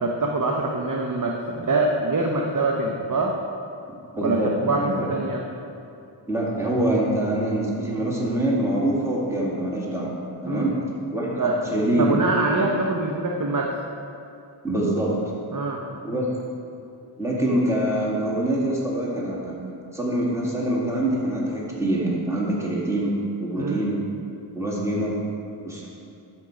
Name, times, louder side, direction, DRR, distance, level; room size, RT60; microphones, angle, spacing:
voice 1, 0.0-3.3 4.2-5.4 10.4-10.7 11.4-13.7 15.5-15.8 23.5-23.8, right 2 dB, 45° right, 0 dB, 0.8 m, -24 dB
voice 2, 3.9-5.1 6.3-10.8 11.1-12.2 14.6-15.1 16.0-16.3 17.2-19.6 19.9-24.0 24.6-25.2 25.6-25.9, right 1 dB, 5° right, -5 dB, 1.9 m, -25 dB
12.0 x 4.6 x 5.0 m, 2.6 s
wide cardioid pair, 45°, 45 cm